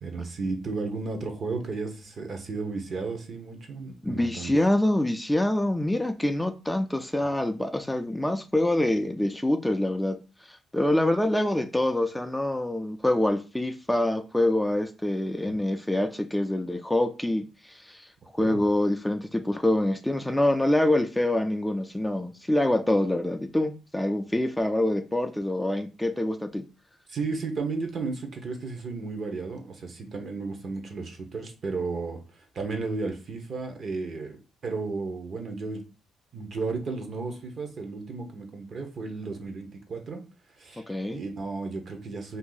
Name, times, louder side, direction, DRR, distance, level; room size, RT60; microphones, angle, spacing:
voice 1, 0.0-4.5 18.4-18.6 27.1-35.8 36.3-40.2 40.6-40.8 41.1-42.4, right 4 dB, 50° right, 0.9 m, -33 dB
voice 2, 4.0-10.2 10.4-26.6 40.9-41.2, left 1 dB, 5° left, 0.4 m, -26 dB
2.7 x 2.5 x 3.9 m
cardioid pair, 90°, 0 cm